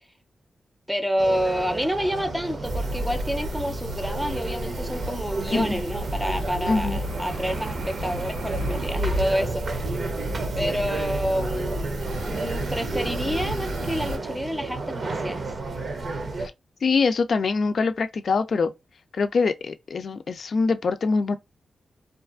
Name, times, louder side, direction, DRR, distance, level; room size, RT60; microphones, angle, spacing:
voice 1, 0.9-9.9 10.6-11.9 12.3-15.5, equal, 5° right, 0.6 m, -28 dB
sound 1, 1.2-16.5, right 3 dB, 55° right, 0.6 m, -33 dB
sound 2, 2.6-14.2, right 1 dB, 85° right, 0.9 m, -31 dB
voice 2, 6.7-7.0 16.8-18.7 19.2-21.4, left 4 dB, 65° left, 0.4 m, -23 dB
2.5 x 2.4 x 2.4 m
cardioid pair, 75°, 0 cm